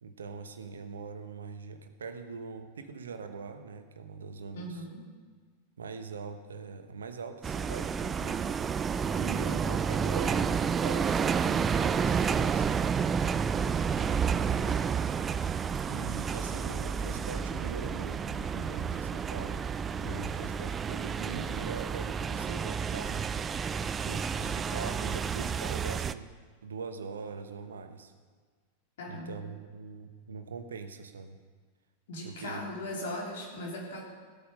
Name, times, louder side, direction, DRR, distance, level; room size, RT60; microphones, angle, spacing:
voice 1, 0.0-4.8 5.8-8.6 9.1-12.9 14.0-14.8 15.9-19.6 20.0-23.2 24.0-26.3 26.6-28.1 29.1-31.4 32.2-32.6, right 5 dB, 70° right, 8 dB, 1.0 m, -42 dB
voice 2, 4.5-5.0 29.0-29.3 32.1-34.0, left 1 dB, 60° left, -1 dB, 3.3 m, -38 dB
sound 1, 7.4-26.1, right 6 dB, 20° right, 0.4 m, -30 dB
16.5 x 8.7 x 5.3 m, 1.6 s
figure-of-eight pair, 90°, 0 cm